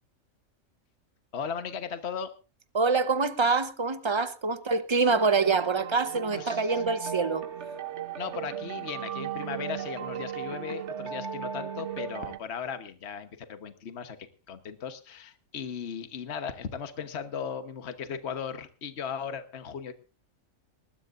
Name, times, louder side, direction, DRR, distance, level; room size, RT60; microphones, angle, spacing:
voice 1, 1.3-2.3 6.4-6.7 8.2-14.2 14.5-19.9, left 7 dB, 55° left, 1.4 m, -37 dB
voice 2, 2.7-7.4, right 4 dB, 25° right, 0.8 m, -25 dB
sound 1, 5.1-12.4, right 8 dB, 60° right, 1.2 m, -36 dB
20.0 x 19.5 x 2.6 m
omnidirectional pair, 1.4 m